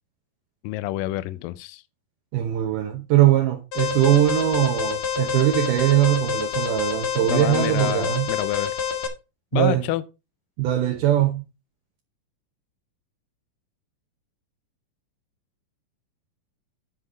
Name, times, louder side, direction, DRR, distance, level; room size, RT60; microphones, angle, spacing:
voice 1, 0.6-1.8 7.2-8.8 9.5-10.0, left 15 dB, 80° left, 2.2 m, -28 dB
voice 2, 2.3-8.3 9.5-9.8 10.6-11.4, right 12 dB, 70° right, 2.4 m, -21 dB
Alarm, 3.7-9.1, left 7 dB, 45° left, 2.1 m, -27 dB
12.0 x 5.2 x 3.8 m
omnidirectional pair, 4.2 m